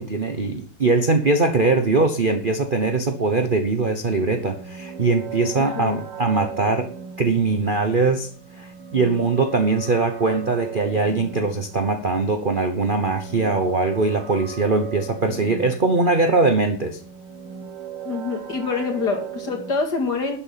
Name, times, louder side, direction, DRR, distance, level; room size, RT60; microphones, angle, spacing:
voice 1, 0.0-6.9 7.2-8.3 8.6-17.0, right 3 dB, 40° right, 0.8 m, -21 dB
sound 1, 4.0-19.7, right 8 dB, 80° right, 2.4 m, -38 dB
voice 2, 5.6-6.0 18.0-20.4, left 4 dB, 50° left, 2.7 m, -26 dB
12.0 x 7.3 x 5.8 m
omnidirectional pair, 2.4 m